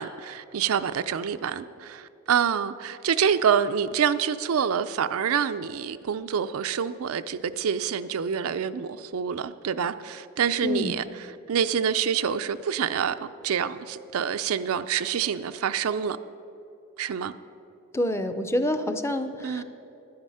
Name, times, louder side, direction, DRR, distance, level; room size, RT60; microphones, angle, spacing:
voice 1, 0.0-13.1 13.4-16.2 17.0-17.3 19.4-19.6, right 7 dB, 90° right, 0.4 m, -27 dB
voice 2, 10.6-11.0 17.9-19.6, left 1 dB, 15° left, 0.5 m, -27 dB
10.5 x 9.6 x 5.6 m
head